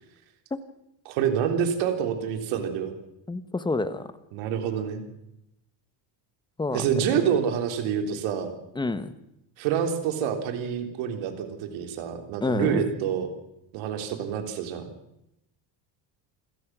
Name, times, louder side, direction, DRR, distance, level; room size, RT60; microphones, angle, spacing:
voice 1, 1.1-2.9 4.3-5.0 6.7-8.6 9.6-13.3 13.7-14.8, right 8 dB, 75° right, 6 dB, 3.7 m, -27 dB
voice 2, 3.3-4.1 6.6-6.9 8.7-9.1 12.4-12.8, left 3 dB, 10° left, 12 dB, 1.1 m, -28 dB
28.0 x 16.0 x 6.2 m, 0.87 s
cardioid pair, 140°, 46 cm